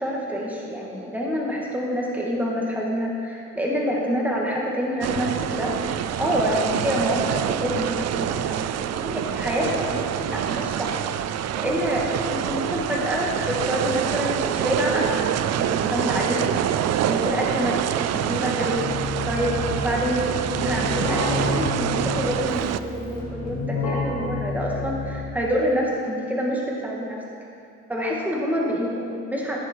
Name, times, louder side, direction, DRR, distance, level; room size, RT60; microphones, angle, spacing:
voice 1, 0.0-5.7 6.2-11.0 11.5-15.2 15.5-17.8 18.0-18.8 19.3-27.2 27.9-29.6, equal, 5° right, -3 dB, 1.9 m, -27 dB
sound 1, 5.0-22.8, right 10 dB, 60° right, 0.4 m, -26 dB
Keyboard (musical), 18.6-25.5, left 4 dB, 80° left, 2.8 m, -30 dB
15.5 x 6.4 x 4.5 m, 2.5 s
cardioid pair, 90°, 30 cm